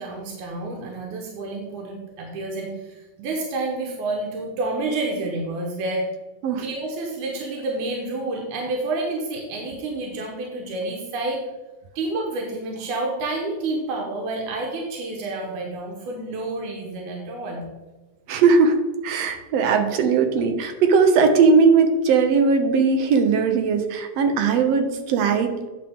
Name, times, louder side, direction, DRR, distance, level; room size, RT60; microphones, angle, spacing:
voice 1, 0.0-6.1 6.6-11.4 12.0-17.6, right 2 dB, 90° right, -1 dB, 2.5 m, -29 dB
voice 2, 18.3-18.8 19.0-25.7, right 5 dB, 70° right, 6 dB, 1.8 m, -19 dB
9.1 x 6.6 x 3.5 m, 1.2 s
omnidirectional pair, 3.4 m